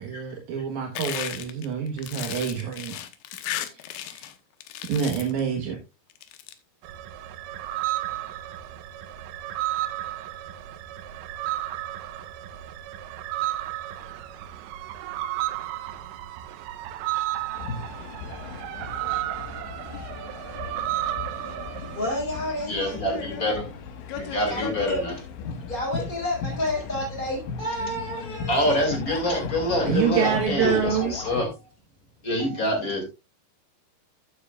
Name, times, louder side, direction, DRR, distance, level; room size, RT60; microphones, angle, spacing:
voice 1, 0.0-3.0 3.7-4.3 4.9-5.8 29.8-31.1, right 7 dB, 65° right, 2 dB, 2.0 m, -27 dB
sound 1, 1.0-4.3 4.6-5.4 6.1-6.5, left 12 dB, 75° left, 2.5 m, -35 dB
sound 2, 6.8-22.2, right 14 dB, 85° right, 3.1 m, -33 dB
sound 3, 17.5-31.4, left 5 dB, 90° left, 3.8 m, -36 dB
voice 2, 22.0-23.2 24.4-25.0 25.7-28.8 30.2-31.1, left 1 dB, 10° left, -5 dB, 4.1 m, -31 dB
voice 3, 22.7-23.6 24.2-25.2 28.5-31.5 32.2-33.0, left 1 dB, 30° left, 3 dB, 1.9 m, -26 dB
13.5 x 8.2 x 2.4 m, 0.25 s
omnidirectional pair, 5.2 m